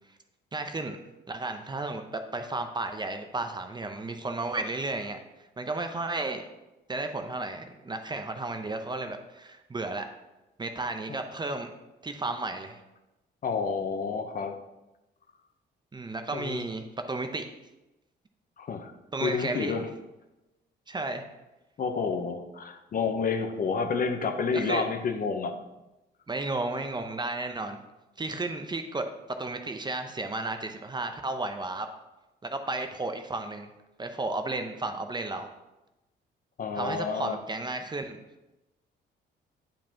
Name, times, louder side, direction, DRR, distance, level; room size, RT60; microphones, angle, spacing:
voice 1, 0.5-1.0 1.3-5.2 5.6-6.4 6.9-10.1 10.6-11.7 12.0-12.8 15.9-17.4 19.1-19.8 20.9-21.3 24.5-24.8 26.3-27.8 28.2-29.0 29.4-31.9 32.4-33.7 34.0-35.5 36.7-38.2, right 2 dB, 20° right, 6 dB, 0.6 m, -33 dB
voice 2, 13.4-14.6 16.3-16.6 18.6-18.9 19.2-19.9 21.8-25.6 36.6-37.4, left 5 dB, 45° left, 6 dB, 0.8 m, -29 dB
8.9 x 5.1 x 2.9 m, 0.99 s
cardioid pair, 90°, 20 cm